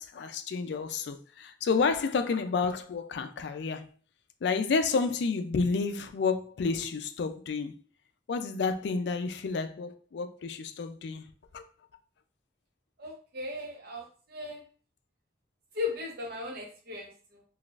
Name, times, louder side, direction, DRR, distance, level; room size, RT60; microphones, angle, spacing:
voice 1, 0.0-3.9 4.4-7.8 8.3-11.2 11.5-11.6, left 4 dB, 70° left, 0.4 m, -30 dB
voice 2, 13.0-14.6 15.7-17.4, left 3 dB, 60° right, 0.8 m, -37 dB
3.9 x 2.4 x 2.4 m
head